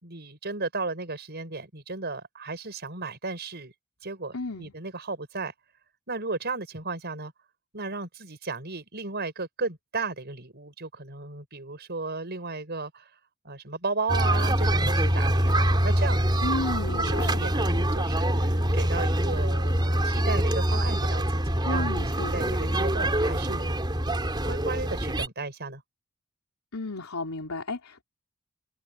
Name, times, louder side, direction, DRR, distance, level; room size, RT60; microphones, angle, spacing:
voice 1, 0.0-3.7 4.0-5.5 6.1-7.3 7.7-13.1 13.4-16.2 17.0-23.8 24.5-25.8, right 3 dB, 50° right, 5.6 m, -34 dB
voice 2, 4.3-4.7 16.4-17.5 21.6-22.8 26.7-28.0, left 3 dB, 90° left, 3.2 m, -33 dB
sound 1, 14.1-25.3, right 1 dB, 20° right, 3.8 m, -25 dB
head